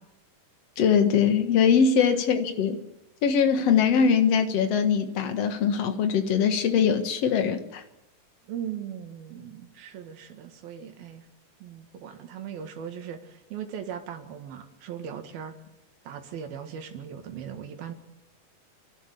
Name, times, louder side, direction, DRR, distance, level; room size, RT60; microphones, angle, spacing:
voice 1, 0.8-2.8 3.2-7.8, left 7 dB, 55° left, 7 dB, 2.3 m, -22 dB
voice 2, 8.5-11.2 11.6-15.5 16.1-17.9, right 8 dB, 85° right, 6 dB, 3.7 m, -38 dB
29.5 x 12.0 x 8.4 m, 0.91 s
omnidirectional pair, 4.1 m